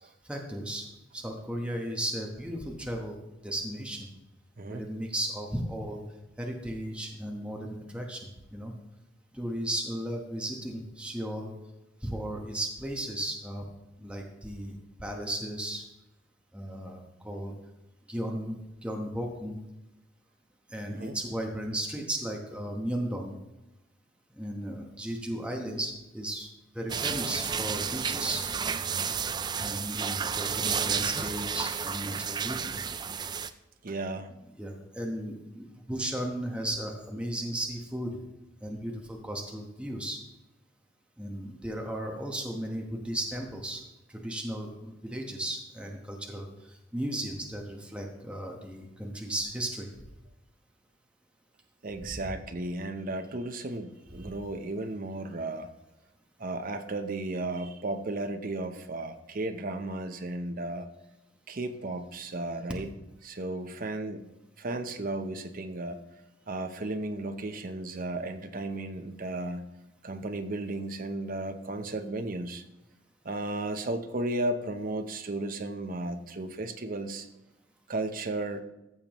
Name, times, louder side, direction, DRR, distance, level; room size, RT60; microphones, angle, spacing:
voice 1, 0.0-0.9 1.1-3.2 3.4-4.1 4.7-6.0 6.4-8.7 9.3-11.5 12.0-13.6 14.0-15.8 16.5-17.5 18.1-19.6 20.7-23.4 24.3-26.5 26.7-28.5 29.6-32.7 34.6-38.1 38.6-40.2 41.2-43.8 44.1-49.9 52.0-52.2, right 1 dB, 5° right, 0 dB, 1.0 m, -35 dB
voice 2, 4.6-4.9 20.9-21.2 33.8-34.3 51.8-55.7 56.4-60.9 61.5-62.9 63.2-64.3 64.6-66.0 66.5-69.7 70.0-72.6 73.2-77.3 77.9-78.6, right 2 dB, 45° right, 7 dB, 0.7 m, -34 dB
sound 1, 26.9-33.5, right 6 dB, 20° right, 0.3 m, -31 dB
14.5 x 6.8 x 3.0 m, 0.96 s
head